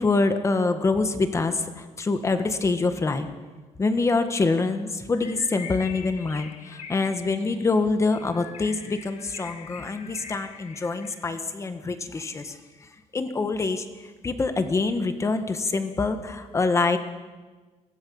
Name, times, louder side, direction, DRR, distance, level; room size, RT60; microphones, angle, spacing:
voice 1, 0.0-3.3 3.8-17.0, left 3 dB, 25° left, 8 dB, 1.6 m, -25 dB
Bird, 5.1-11.4, left 6 dB, 65° left, 1.9 m, -44 dB
24.5 x 17.5 x 7.2 m, 1.3 s
cardioid pair, 160°, 12 cm